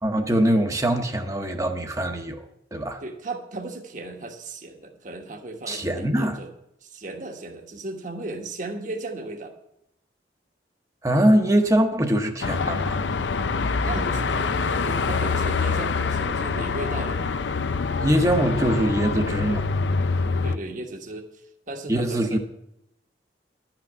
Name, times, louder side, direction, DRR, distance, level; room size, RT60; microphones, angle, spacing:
voice 1, 0.0-2.5 2.7-3.0 5.7-6.4 11.0-13.1 18.0-19.7 21.9-22.4, right 1 dB, 20° right, 0.9 m, -22 dB
voice 2, 3.0-6.5 6.8-9.5 13.8-17.3 20.4-22.4, right 2 dB, 45° right, 1.3 m, -36 dB
Car passing by / Traffic noise roadway noise / Engine, 12.4-20.6, left 4 dB, 85° left, 0.6 m, -25 dB
11.5 x 6.0 x 9.1 m
head